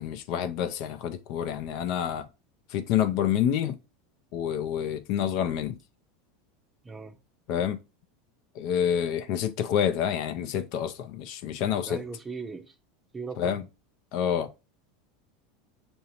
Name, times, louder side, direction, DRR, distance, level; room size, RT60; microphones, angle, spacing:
voice 1, 0.0-2.3 2.7-3.8 4.3-5.8 7.5-7.8 8.5-12.0 13.4-13.6 14.1-14.5, left 9 dB, 60° left, 0.5 m, -28 dB
voice 2, 6.8-7.1 11.7-12.7 13.1-13.6, right 4 dB, 15° right, 0.6 m, -38 dB
5.6 x 2.7 x 2.9 m
supercardioid pair, 115°, 0 cm